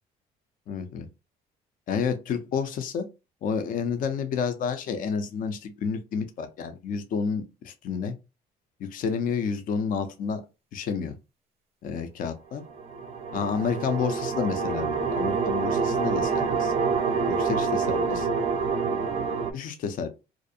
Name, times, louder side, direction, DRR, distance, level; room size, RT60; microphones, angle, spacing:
voice 1, 0.7-1.1 1.9-3.0 3.4-8.1 8.8-10.4 10.7-11.1 11.8-12.6 13.3-16.7 17.3-18.3 19.5-20.1, left 6 dB, 55° left, 8 dB, 0.5 m, -30 dB
sound 1, 12.7-19.5, right 5 dB, 35° right, 0.5 m, -27 dB
2.5 x 2.0 x 2.6 m, 0.27 s
cardioid pair, 110°, 17 cm